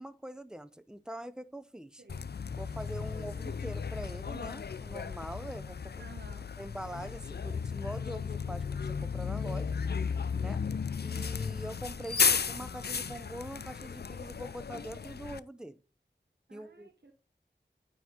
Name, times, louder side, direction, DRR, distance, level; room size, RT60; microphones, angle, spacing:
voice 1, 0.0-2.0 2.6-6.0 6.6-9.7 10.3-10.6 11.0-15.8 16.5-16.9, right 1 dB, 5° right, 0.5 m, -43 dB
Bus, 2.1-15.4, left 6 dB, 65° left, 0.4 m, -34 dB
voice 2, 6.0-6.5 16.5-17.1, right 4 dB, 70° right, 1.0 m, -54 dB
9.3 x 3.6 x 5.1 m
wide cardioid pair, 40°, 18 cm